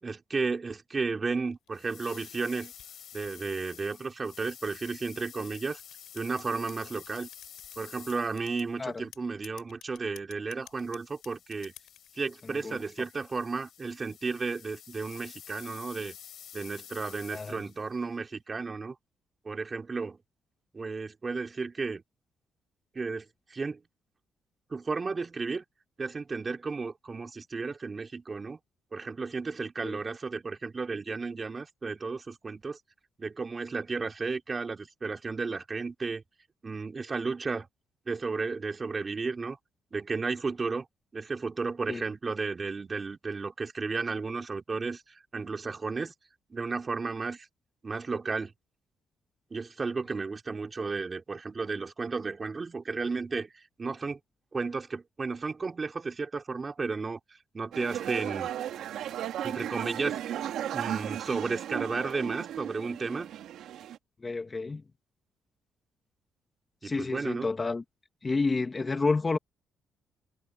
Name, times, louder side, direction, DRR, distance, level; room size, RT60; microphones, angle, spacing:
voice 1, 0.0-2.7 3.1-5.8 6.1-7.3 7.8-11.7 12.2-16.2 16.5-19.0 19.5-20.2 20.7-22.0 22.9-23.8 24.7-25.6 26.0-28.6 28.9-32.8 33.2-36.2 36.6-37.7 38.1-39.6 39.9-40.9 41.1-45.0 45.3-46.1 46.5-47.5 47.8-48.5 49.5-54.2 54.5-57.2 57.5-58.5 59.4-60.2 60.7-63.3 66.8-67.5, right 4 dB, 30° right, 3.7 m, -33 dB
sound 1, 1.5-4.0 4.7-7.8 8.1-8.7 9.1-12.1, left 12 dB, 80° left, 5.7 m, -53 dB
sound 2, 1.7-8.8 10.6-17.9, left 9 dB, 65° left, 6.4 m, -50 dB
sound 3, 57.7-64.0, right 11 dB, 80° right, 2.0 m, -35 dB
voice 2, 64.2-64.8 66.8-67.8 68.2-69.4, left 3 dB, 25° left, 1.8 m, -29 dB
cardioid pair, 90°, 0 cm